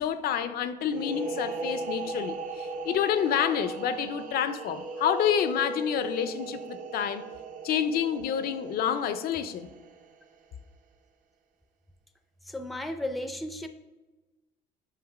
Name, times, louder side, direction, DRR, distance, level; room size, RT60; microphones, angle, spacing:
voice 1, 0.0-7.3 7.6-9.7, left 9 dB, 65° left, 0.5 m, -28 dB
sound 1, 0.9-10.4, right 3 dB, 50° right, 0.7 m, -37 dB
voice 2, 12.4-13.7, left 1 dB, ahead, 0.4 m, -34 dB
8.0 x 2.9 x 4.9 m
cardioid pair, 110°, 17 cm